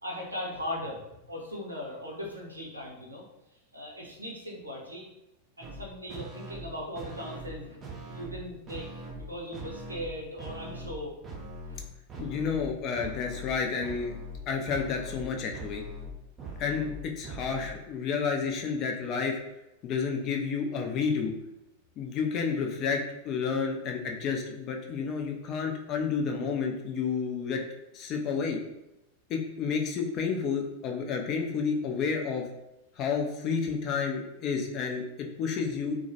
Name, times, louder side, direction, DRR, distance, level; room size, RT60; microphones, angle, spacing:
voice 1, 0.0-3.2 3.7-5.1 5.6-7.8 8.1-11.1 11.7-11.8, left 1 dB, 85° right, -2 dB, 0.6 m, -39 dB
sound 1, 5.6-5.8 6.1-6.7 6.9-7.5 7.8-8.4 8.7-9.2 9.5-10.1 10.4-11.0 11.2-11.8 12.1-12.7 12.9-13.5 13.8-17.7, right 1 dB, 25° right, 0.5 m, -41 dB
voice 2, 12.2-14.2 14.5-15.8 16.6-19.4 19.8-21.3 22.0-27.6 27.9-28.6 29.3-32.5 33.0-36.0, left 5 dB, 35° left, 2 dB, 0.4 m, -30 dB
2.2 x 2.1 x 2.7 m, 0.91 s
figure-of-eight pair, 90°, 0 cm